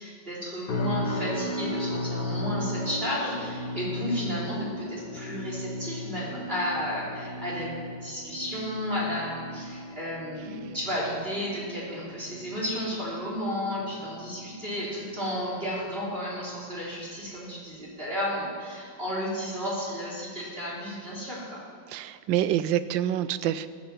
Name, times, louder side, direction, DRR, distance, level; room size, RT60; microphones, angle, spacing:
voice 1, 0.0-7.7 8.0-21.6, equal, 25° right, -6 dB, 3.7 m, -33 dB
sound 1, 0.7-15.9 16.2-16.6 17.1-17.3, left 1 dB, 55° left, 2.3 m, -36 dB
voice 2, 21.9-23.7, right 11 dB, 75° right, 14 dB, 1.2 m, -27 dB
14.5 x 8.9 x 7.3 m, 2.1 s
omnidirectional pair, 2.2 m